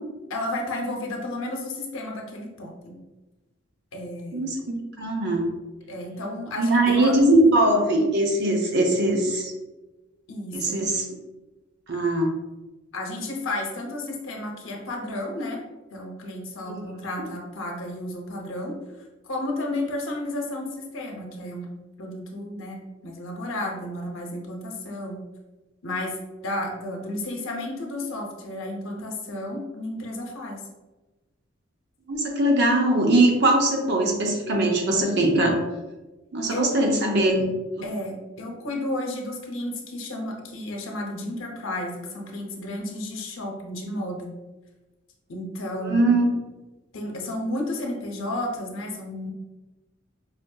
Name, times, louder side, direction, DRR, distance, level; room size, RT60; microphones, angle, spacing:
voice 1, 0.3-3.0 3.9-4.5 5.9-7.1 10.3-10.8 12.9-15.6 15.9-18.8 19.3-21.7 22.0-25.2 25.8-26.2 26.4-30.6 36.5-36.7 37.8-44.3 45.3-46.1 46.9-49.3, left 1 dB, 75° left, 1 dB, 0.7 m, -32 dB
voice 2, 4.3-5.5 6.6-9.5 10.5-11.0 11.9-12.3 16.7-16.8 32.1-35.6 36.3-37.5 37.8-37.9 45.8-46.2, right 1 dB, 55° right, 2 dB, 0.6 m, -21 dB
4.9 x 2.6 x 2.3 m, 1.1 s
head